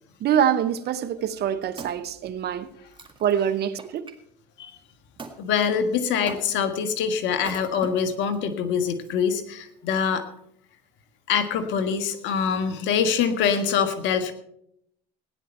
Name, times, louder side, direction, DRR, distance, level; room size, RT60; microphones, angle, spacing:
voice 1, 0.2-2.7 3.2-4.1, right 9 dB, 55° right, 1.0 m, -25 dB
Wood, 1.2-4.2 5.2-5.4 6.3-6.8 7.4-8.4 9.0-9.1, right 4 dB, 25° right, 1.9 m, -42 dB
voice 2, 5.4-10.2 11.3-14.3, left 7 dB, 65° left, 1.6 m, -24 dB
16.5 x 10.0 x 4.4 m
supercardioid pair, 80°, 20 cm